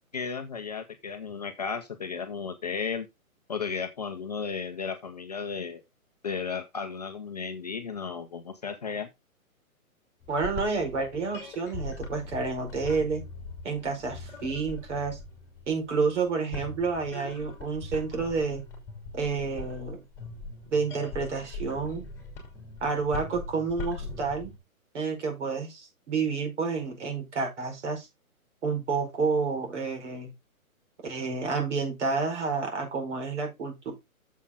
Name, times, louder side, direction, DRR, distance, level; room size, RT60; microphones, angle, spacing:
voice 1, 0.1-3.1 3.5-5.8 6.2-9.1, left 6 dB, 30° left, 0.7 m, -34 dB
sound 1, 10.2-24.6, left 2 dB, 5° left, 2.9 m, -41 dB
voice 2, 10.3-13.2 13.6-15.2 15.7-18.6 19.1-20.0 20.7-22.0 22.8-24.5 24.9-28.1 28.6-30.3 31.0-33.9, right 4 dB, 55° right, 4.8 m, -29 dB
8.4 x 7.4 x 3.7 m
hypercardioid pair, 165°, 43 cm